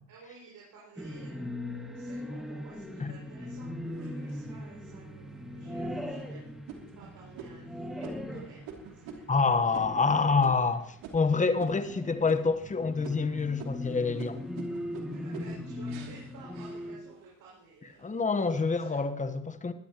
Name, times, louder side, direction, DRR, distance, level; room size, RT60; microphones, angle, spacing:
voice 1, 0.1-3.7 3.9-6.7 6.9-9.2 9.7-10.2 15.1-19.0, right 4 dB, 60° right, 6.5 m, -54 dB
sound 1, 1.0-17.0, left 1 dB, ahead, 2.1 m, -40 dB
sound 2, 3.8-4.7 5.3-5.4 5.9-6.2 6.7-12.0 12.3-12.8 13.0-17.4 17.8-18.4, right 5 dB, 85° right, 2.9 m, -47 dB
voice 2, 9.3-14.4 18.0-19.7, left 4 dB, 20° left, 1.2 m, -27 dB
20.5 x 13.0 x 3.0 m
supercardioid pair, 90°, 36 cm